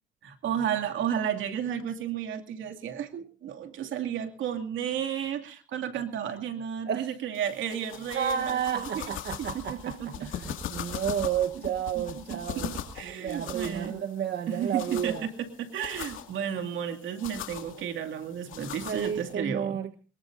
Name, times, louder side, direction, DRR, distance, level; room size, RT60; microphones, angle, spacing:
voice 1, 0.2-9.1 9.4-10.3 10.8-11.1 11.9-14.0 14.5-15.3 15.6-19.8, right 9 dB, 75° right, 6 dB, 2.5 m, -33 dB
sound 1, 7.4-19.3, left 9 dB, 85° left, 2.3 m, -41 dB
voice 2, 8.1-12.7 13.0-15.3 18.5-19.9, right 8 dB, 60° right, 8 dB, 1.2 m, -31 dB
23.5 x 21.0 x 2.6 m, 0.37 s
cardioid pair, 90°, 20 cm